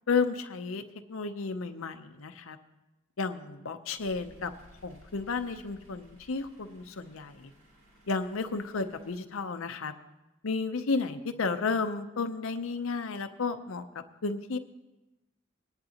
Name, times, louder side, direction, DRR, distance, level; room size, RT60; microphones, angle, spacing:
voice 1, 0.1-0.8 1.1-2.6 3.2-4.5 4.8-7.5 8.1-9.9 10.4-13.8 14.2-14.6, left 4 dB, 90° left, 7 dB, 0.7 m, -32 dB
sound 1, 4.0-9.1, equal, 85° right, 3.1 m, -58 dB
21.0 x 10.5 x 2.9 m, 0.99 s
head